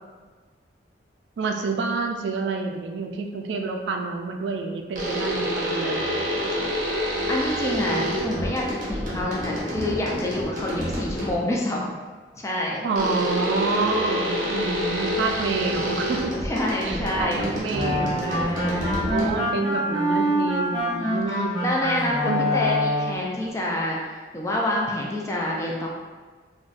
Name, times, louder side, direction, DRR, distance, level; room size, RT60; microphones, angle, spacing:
voice 1, 1.4-6.2 12.8-16.3 16.8-21.6 22.2-22.5, right 4 dB, 75° right, 3 dB, 0.3 m, -28 dB
sound 1, 4.9-11.6 12.9-19.6, equal, 45° right, 0.6 m, -28 dB
voice 2, 7.3-11.9 12.4-12.9 16.4-17.4 18.2-18.9 21.0-25.9, left 1 dB, 15° left, -3 dB, 0.3 m, -27 dB
sound 2, 17.7-23.3, equal, 25° right, 1.0 m, -25 dB
3.8 x 2.2 x 2.4 m, 1.4 s
head